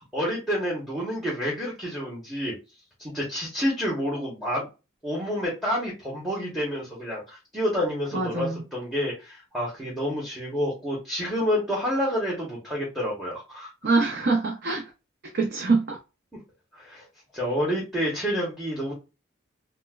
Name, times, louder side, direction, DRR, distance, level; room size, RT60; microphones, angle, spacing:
voice 1, 0.1-2.5 3.0-4.7 5.0-13.7 16.7-17.0 17.3-18.9, equal, ahead, 1.0 m, -29 dB
voice 2, 8.1-8.6 13.8-14.9 15.2-16.0, right 3 dB, 50° right, 0.6 m, -24 dB
4.2 x 2.1 x 2.4 m
head